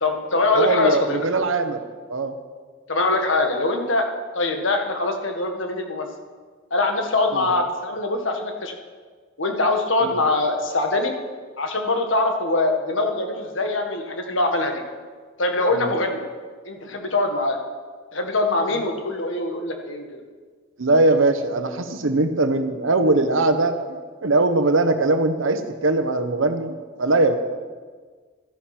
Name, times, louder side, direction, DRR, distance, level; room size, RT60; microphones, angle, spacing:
voice 1, 0.0-1.2 2.9-4.1 4.3-6.1 6.7-8.7 9.4-11.1 11.6-14.8 15.4-16.2 16.6-17.6 18.1-20.2, left 2 dB, 75° left, 4 dB, 1.6 m, -23 dB
voice 2, 0.5-1.8 2.1-2.3 7.3-7.5 10.0-10.2 15.7-15.9 20.8-27.3, right 2 dB, 85° right, 9 dB, 1.0 m, -21 dB
13.0 x 10.0 x 6.0 m, 1.5 s
head